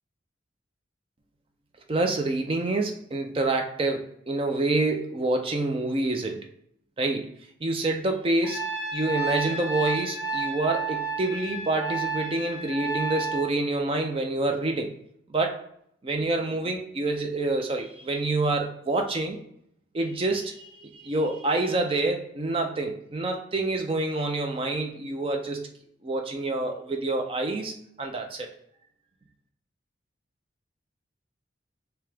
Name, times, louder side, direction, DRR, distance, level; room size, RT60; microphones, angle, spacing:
voice 1, 1.9-6.5 7.0-7.3 7.6-8.7 8.9-14.9 15.3-15.6 16.0-19.4 19.9-25.7 26.0-28.5, right 2 dB, 30° right, 4 dB, 0.4 m, -27 dB
Trumpet, 8.4-13.5, right 3 dB, 15° left, 0.7 m, -31 dB
3.4 x 2.9 x 3.2 m, 0.71 s
head